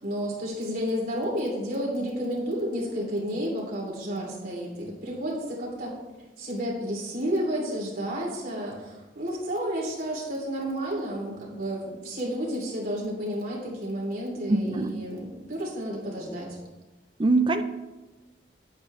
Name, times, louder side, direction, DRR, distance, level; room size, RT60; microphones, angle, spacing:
voice 1, 0.0-6.0 6.4-16.6, equal, 55° right, -3 dB, 2.9 m, -31 dB
voice 2, 14.5-15.0 17.2-17.6, right 2 dB, 30° right, 9 dB, 0.5 m, -23 dB
8.8 x 8.5 x 3.2 m, 1.1 s
head